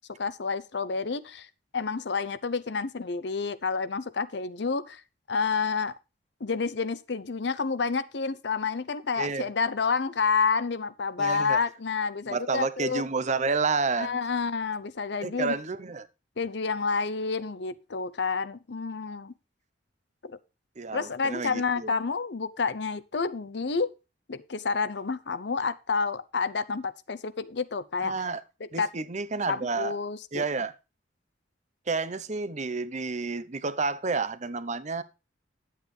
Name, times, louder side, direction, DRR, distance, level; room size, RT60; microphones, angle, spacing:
voice 1, 0.1-1.5 1.7-5.0 5.3-5.9 6.4-13.0 14.0-15.5 16.4-19.3 20.2-20.4 20.9-23.9 24.3-28.3 28.6-28.9 29.5-30.4, left 5 dB, 60° left, 0.7 m, -29 dB
voice 2, 9.2-9.5 11.2-11.6 12.3-14.2 15.2-16.1 20.8-21.9 28.0-28.4 28.7-29.9 30.3-30.7 31.9-35.0, right 4 dB, 40° right, 0.8 m, -30 dB
11.0 x 8.4 x 3.3 m
head